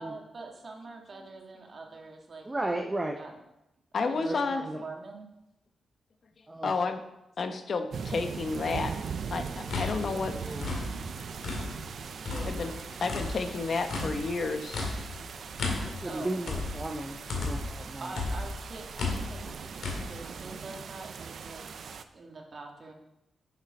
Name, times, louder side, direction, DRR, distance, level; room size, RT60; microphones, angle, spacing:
voice 1, 0.0-2.4 3.1-3.4 3.9-5.3 12.3-12.6 16.0-16.4 18.0-19.4 19.9-22.9, right 3 dB, 50° right, 2 dB, 1.7 m, -44 dB
voice 2, 2.5-3.2 4.1-4.8 6.5-6.7 10.4-10.7 14.0-14.1 15.8-18.1, right 1 dB, 20° right, 4 dB, 0.7 m, -35 dB
voice 3, 3.9-4.6 6.6-7.0 7.4-9.0 9.3-10.6 12.4-12.7 13.0-14.8, left 4 dB, 60° left, 8 dB, 0.9 m, -31 dB
sound 1, 7.9-22.0, right 6 dB, 70° right, 0.5 m, -40 dB
sound 2, 9.5-11.9 12.2-17.8 18.1-20.0, left 3 dB, 75° left, 2.0 m, -34 dB
6.8 x 6.7 x 5.3 m, 0.88 s
cardioid pair, 70°, 0 cm